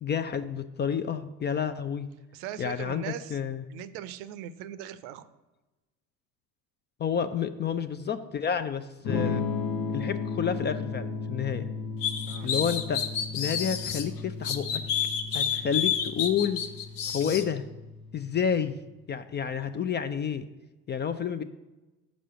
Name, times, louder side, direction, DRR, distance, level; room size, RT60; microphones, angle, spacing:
voice 1, 0.0-2.1 2.6-3.6 7.0-9.5 9.9-11.7 12.4-13.0 13.3-14.8 15.3-16.6 17.1-17.6 18.1-18.8 19.1-20.5 20.9-21.4, left 7 dB, 25° left, 10 dB, 0.4 m, -29 dB
voice 2, 2.3-3.4 3.7-5.3 12.3-12.5 17.0-17.5, right 10 dB, 65° right, 14 dB, 0.7 m, -40 dB
Electric guitar / Strum, 9.1-18.8, left 4 dB, 50° left, 1.0 m, -35 dB
sound 1, 12.0-14.0 14.4-17.4, left 8 dB, 80° left, 0.9 m, -29 dB
6.1 x 5.2 x 6.8 m, 1.1 s
hypercardioid pair, 65°, 46 cm